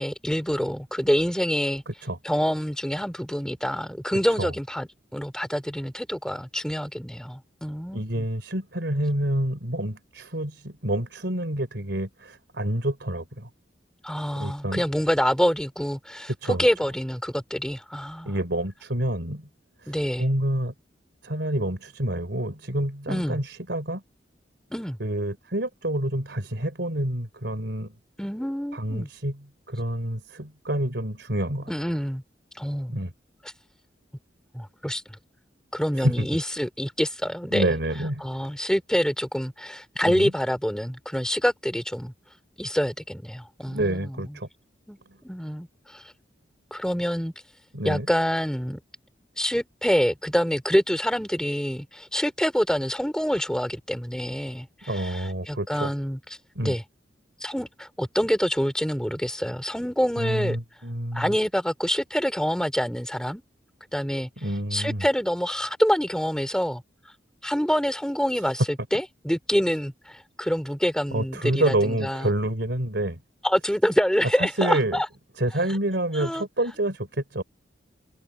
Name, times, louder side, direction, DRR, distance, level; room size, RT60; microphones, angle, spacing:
voice 1, 0.0-1.8 2.2-8.3 14.0-18.3 19.9-20.3 23.1-23.4 24.7-25.0 28.2-29.1 31.7-32.2 32.5-33.0 34.5-35.0 35.7-37.7 38.2-42.1 42.6-44.4 44.9-46.0 46.7-47.3 47.8-48.8 49.4-56.2 56.6-56.8 57.4-60.6 61.1-63.4 63.9-64.3 64.7-66.8 67.4-72.3 73.4-75.1 76.1-76.4, equal, 5° left, 2.7 m, -26 dB
voice 2, 1.9-2.2 4.4-4.5 7.9-13.5 14.4-14.8 16.4-16.7 18.2-19.5 19.8-20.7 21.2-24.0 25.0-27.9 28.7-29.3 29.7-31.7 32.9-33.1 35.9-36.3 37.5-38.3 40.0-40.3 43.7-44.5 47.7-48.1 54.9-55.9 56.5-56.8 60.2-61.3 64.4-65.1 71.1-73.2 74.2-75.0 75.4-77.4, right 1 dB, 70° right, 3.4 m, -28 dB
head